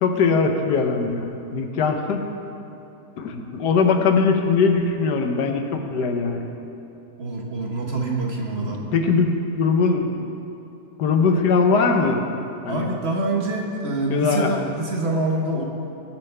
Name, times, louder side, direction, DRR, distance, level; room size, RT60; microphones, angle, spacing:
voice 1, 0.0-2.2 3.2-6.4 8.6-10.3 11.0-12.2 12.6-12.9 14.1-14.5, left 4 dB, 80° left, 4 dB, 1.5 m, -21 dB
voice 2, 7.2-8.8 12.7-15.6, right 2 dB, 45° right, -1 dB, 1.2 m, -25 dB
19.5 x 7.5 x 3.4 m, 2.9 s
omnidirectional pair, 1.8 m